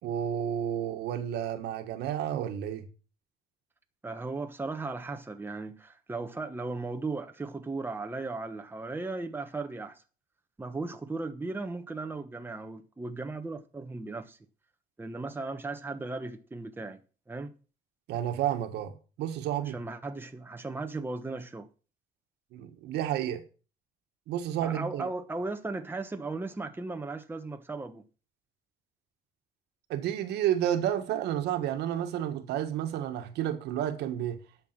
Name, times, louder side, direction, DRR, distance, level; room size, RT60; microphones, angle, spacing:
voice 1, 0.0-2.8 18.1-19.8 22.5-23.4 24.3-25.1 29.9-34.4, right 10 dB, 80° right, 1.8 m, -31 dB
voice 2, 4.0-10.0 10.6-14.4 15.0-17.0 17.3-17.5 19.7-21.7 24.6-28.0, right 3 dB, 10° right, 1.2 m, -36 dB
11.0 x 7.1 x 6.1 m
cardioid pair, 110°, 17 cm